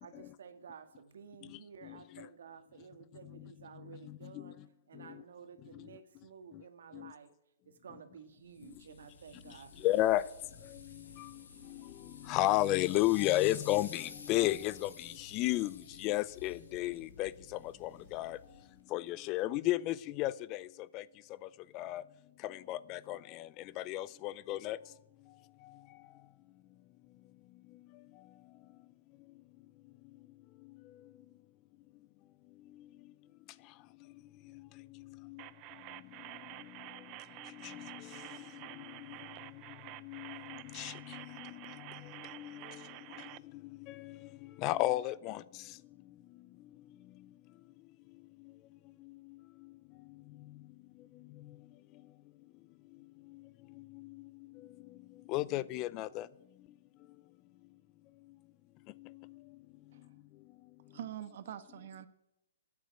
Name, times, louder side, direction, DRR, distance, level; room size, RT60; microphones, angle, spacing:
voice 1, 0.0-4.6 4.9-7.3 7.6-10.1, right 6 dB, 75° right, 9 dB, 1.6 m, -53 dB
voice 2, 1.5-2.3 4.1-4.5 5.0-5.1 6.9-7.1 9.8-10.2 10.6-18.4 18.9-20.7 20.9-21.0 21.7-22.0 22.4-24.8 35.1-35.4 37.5-38.2 38.5-39.2 40.0-42.8 43.9-45.4 53.8-54.2 55.3-56.3 59.0-59.1, left 16 dB, 30° left, 20 dB, 0.4 m, -34 dB
sound 1, 8.5-18.8, left 4 dB, 90° left, 2.9 m, -53 dB
sound 2, 35.4-43.4, right 19 dB, 35° right, 0.4 m, -49 dB
voice 3, 60.9-62.1, right 11 dB, 60° right, 12 dB, 1.2 m, -45 dB
13.0 x 9.4 x 9.2 m, 0.92 s
hypercardioid pair, 145°, 0 cm